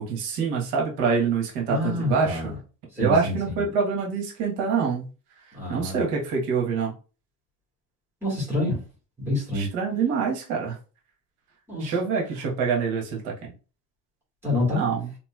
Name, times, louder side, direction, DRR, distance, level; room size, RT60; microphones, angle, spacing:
voice 1, 0.0-2.5 3.0-5.0 5.7-6.9 9.5-10.8 11.8-13.3 14.7-15.1, right 5 dB, 90° right, -1 dB, 1.4 m, -25 dB
voice 2, 1.7-2.5 3.0-3.6 5.5-6.0 8.2-8.8 9.2-9.7 11.7-11.9 14.4-14.8, left 2 dB, 5° right, -8 dB, 1.9 m, -27 dB
3.8 x 3.0 x 2.4 m, 0.35 s
cardioid pair, 175°, 38 cm